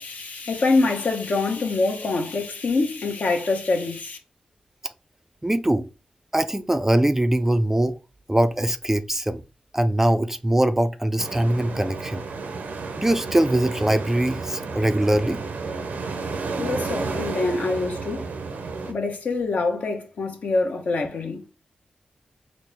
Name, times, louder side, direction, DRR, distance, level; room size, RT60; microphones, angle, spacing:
voice 1, 0.0-4.2 16.6-18.2 18.9-21.4, left 3 dB, 65° left, 0.9 m, -25 dB
voice 2, 5.4-5.9 6.3-7.9 8.3-9.4 9.7-12.2 13.0-15.4, right 1 dB, 15° right, 0.3 m, -22 dB
sound 1, 11.2-18.9, right 4 dB, 85° right, 0.6 m, -32 dB
4.1 x 2.0 x 3.3 m
cardioid pair, 70°, 3 cm